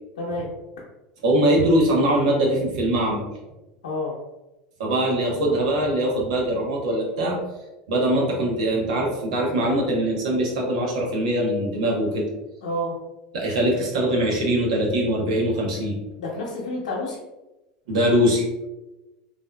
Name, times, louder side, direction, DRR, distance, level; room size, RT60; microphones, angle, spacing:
voice 1, 0.2-0.5 3.8-4.2 12.6-12.9 16.2-17.2, left 1 dB, 85° left, -5 dB, 0.7 m, -29 dB
voice 2, 1.2-3.2 4.8-7.4 7.9-12.3 13.3-16.0 17.9-18.5, right 1 dB, 80° right, -1 dB, 0.9 m, -22 dB
3.5 x 2.6 x 2.2 m, 1.0 s
hypercardioid pair, 90°, 4 cm